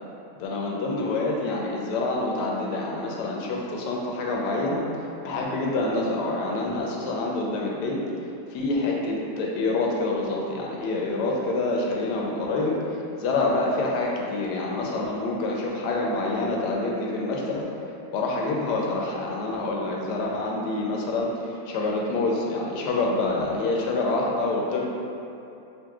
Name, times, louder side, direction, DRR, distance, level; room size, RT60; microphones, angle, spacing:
voice 1, 0.4-4.8 5.2-8.0 8.5-12.8 13.2-17.7 18.1-24.9, left 2 dB, 80° left, -2 dB, 1.2 m, -27 dB
5.2 x 2.8 x 2.3 m, 2.7 s
omnidirectional pair, 1.8 m